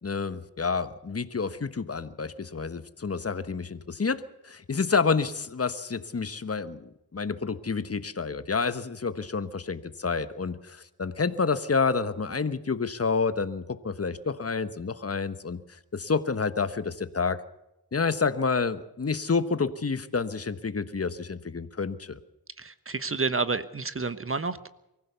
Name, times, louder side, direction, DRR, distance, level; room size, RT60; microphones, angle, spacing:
voice 1, 0.0-15.6 15.9-17.4 17.9-22.2, left 4 dB, 40° left, 12 dB, 1.3 m, -29 dB
voice 2, 22.6-24.7, right 4 dB, 35° right, 13 dB, 1.1 m, -30 dB
24.0 x 15.5 x 7.0 m, 0.89 s
cardioid pair, 70°, 38 cm